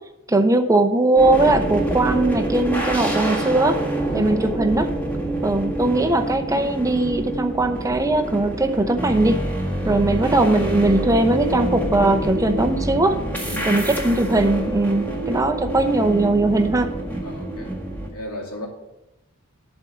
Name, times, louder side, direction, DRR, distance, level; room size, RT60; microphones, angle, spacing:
voice 1, 0.3-3.8 4.1-4.9 5.4-9.4 9.9-13.2 13.7-16.9, right 2 dB, 15° right, 6 dB, 0.6 m, -19 dB
sound 1, 1.2-18.1, right 1 dB, 10° left, 1.8 m, -26 dB
voice 2, 9.8-10.2 13.4-13.9 17.2-17.7 18.1-18.7, left 1 dB, 85° left, -1 dB, 2.6 m, -35 dB
11.0 x 4.4 x 8.0 m, 0.94 s
head